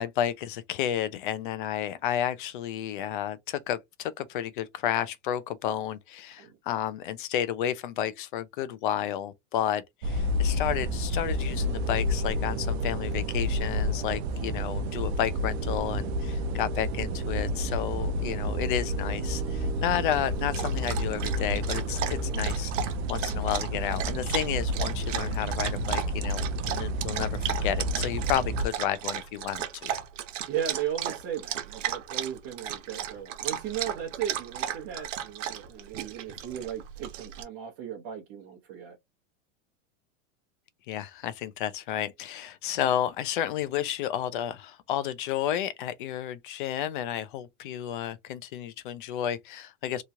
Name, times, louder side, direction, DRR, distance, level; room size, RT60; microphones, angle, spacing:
voice 1, 0.0-22.7 23.1-29.9 40.9-50.0, left 10 dB, 45° left, 0.4 m, -31 dB
sound 1, 10.0-28.7, equal, 60° right, 0.5 m, -30 dB
sound 2, 11.4-23.3, right 3 dB, 10° right, 0.9 m, -41 dB
Dog, 20.0-37.4, right 10 dB, 90° right, 0.9 m, -35 dB
voice 2, 30.5-39.0, right 9 dB, 35° right, 0.9 m, -36 dB
3.0 x 2.3 x 2.6 m
supercardioid pair, 180°, 36 cm